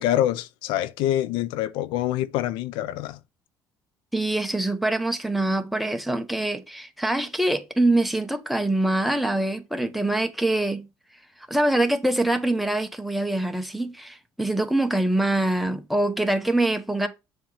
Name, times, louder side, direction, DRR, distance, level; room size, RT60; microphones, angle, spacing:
voice 1, 0.0-3.2, left 12 dB, 90° left, 0.5 m, -25 dB
voice 2, 4.1-10.9 11.5-17.1, right 1 dB, ahead, 0.9 m, -24 dB
7.4 x 3.1 x 5.5 m
cardioid pair, 120°, 8 cm